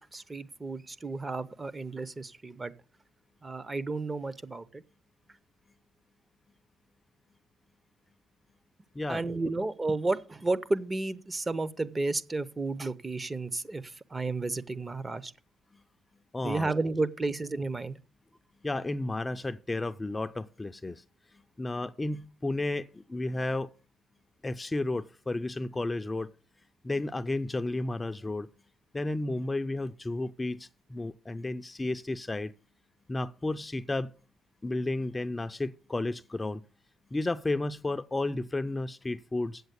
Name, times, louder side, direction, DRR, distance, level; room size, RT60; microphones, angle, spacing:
voice 1, 0.0-2.7 3.4-4.8 9.1-15.3 16.4-18.0, right 3 dB, 25° right, 0.8 m, -32 dB
voice 2, 16.3-16.7 18.6-21.0 21.6-23.7 24.4-26.3 26.8-28.5 28.9-32.5 33.1-34.1 34.6-36.6 37.1-39.6, left 2 dB, 20° left, 0.5 m, -32 dB
8.0 x 7.6 x 8.1 m
cardioid pair, 90°, 0 cm